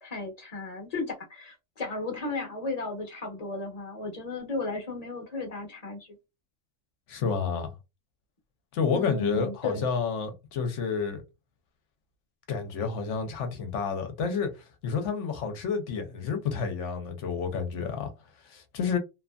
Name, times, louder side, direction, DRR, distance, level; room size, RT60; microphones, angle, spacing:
voice 1, 0.0-6.2 8.9-9.9, left 3 dB, 35° left, 0.9 m, -35 dB
voice 2, 7.1-7.7 8.7-11.2 12.5-14.5 14.8-18.1 18.4-19.0, left 5 dB, 70° left, 1.0 m, -30 dB
2.7 x 2.5 x 2.2 m
omnidirectional pair, 1.3 m